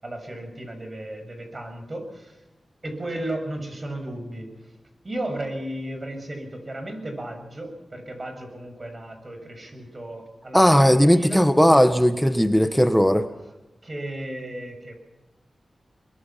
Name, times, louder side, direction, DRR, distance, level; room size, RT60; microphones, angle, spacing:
voice 1, 0.0-2.5 2.8-4.7 5.0-11.5 13.8-14.9, right 1 dB, 35° right, 6 dB, 6.9 m, -34 dB
voice 2, 10.5-13.3, equal, ahead, 9 dB, 1.4 m, -17 dB
23.5 x 22.5 x 5.9 m, 1.0 s
wide cardioid pair, 75°, 0 cm